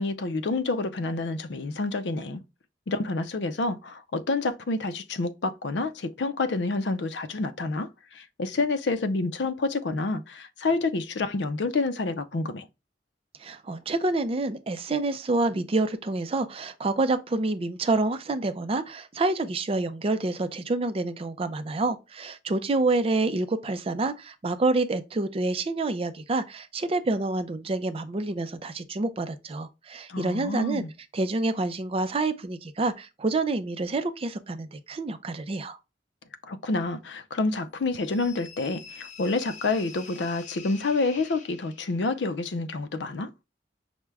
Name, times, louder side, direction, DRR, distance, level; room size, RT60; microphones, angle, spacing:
voice 1, 0.0-2.4 2.9-12.7 30.1-30.9 36.4-43.3, left 3 dB, 70° left, 0.5 m, -28 dB
voice 2, 13.4-30.8 31.1-35.8, right 2 dB, 30° right, 0.4 m, -28 dB
sound 1, 37.9-42.1, left 5 dB, 40° left, 0.8 m, -46 dB
6.0 x 2.1 x 3.4 m
head